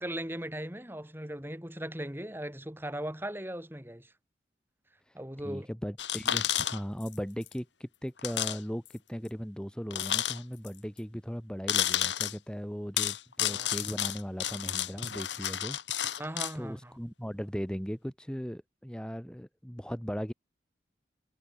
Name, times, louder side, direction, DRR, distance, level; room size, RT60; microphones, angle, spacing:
voice 1, 0.0-4.1 5.1-5.7 13.4-13.7 16.2-16.9, right 1 dB, 10° right, 5.5 m, -38 dB
voice 2, 5.4-16.3 16.5-20.3, equal, 5° left, 4.2 m, -38 dB
sound 1, 6.0-7.2 7.4-7.5 8.2-8.6 8.9-9.0 9.9-10.7 11.7-12.4 13.0-16.5, left 11 dB, 80° left, 3.1 m, -31 dB
head